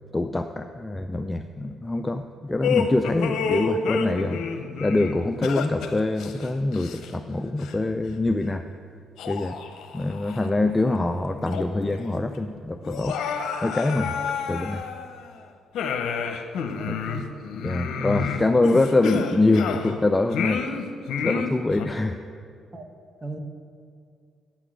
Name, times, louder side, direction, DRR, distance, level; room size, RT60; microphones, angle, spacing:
voice 1, 0.1-4.4 4.8-8.6 9.3-9.6 9.9-13.2 13.6-14.8 16.9-17.0 17.6-20.7 21.2-22.2, left 2 dB, 15° left, 7 dB, 0.4 m, -24 dB
sound 1, 2.6-7.3 7.6-7.8 8.5-8.6 9.2-10.5 10.9-11.0 11.4-12.0 12.2-12.3 12.8-15.3 15.7-20.0 20.3-21.9, left 6 dB, 75° left, 0.8 m, -29 dB
voice 2, 16.7-17.3 22.7-22.9 23.2-23.4, right 3 dB, 20° right, 5 dB, 1.1 m, -36 dB
9.0 x 6.1 x 7.8 m, 2.2 s
cardioid pair, 90°, 0 cm